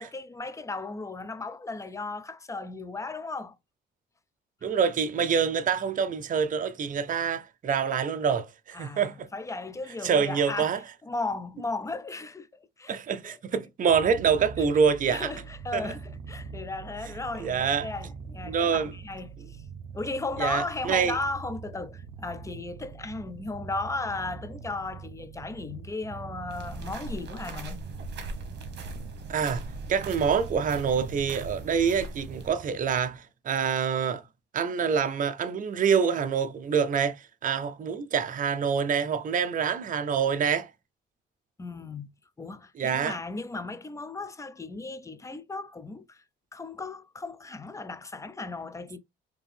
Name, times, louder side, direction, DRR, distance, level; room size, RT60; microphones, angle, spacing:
voice 1, 0.0-3.6 8.7-9.0 9.3-10.7 11.0-13.4 15.1-19.6 19.9-27.8 41.6-42.1 42.4-46.2 46.5-49.0, left 3 dB, 15° left, 0.5 m, -36 dB
voice 2, 4.6-9.3 10.0-10.8 12.9-15.3 15.7-15.9 17.4-17.9 18.5-18.9 20.4-21.2 29.3-34.2 34.5-40.7 42.8-43.2, right 6 dB, 40° right, 0.6 m, -26 dB
Purr, 13.8-33.2, right 6 dB, 80° right, 0.7 m, -43 dB
sound 1, 26.5-32.5, right 2 dB, 60° right, 1.1 m, -40 dB
3.6 x 2.8 x 3.4 m
cardioid pair, 90°, 20 cm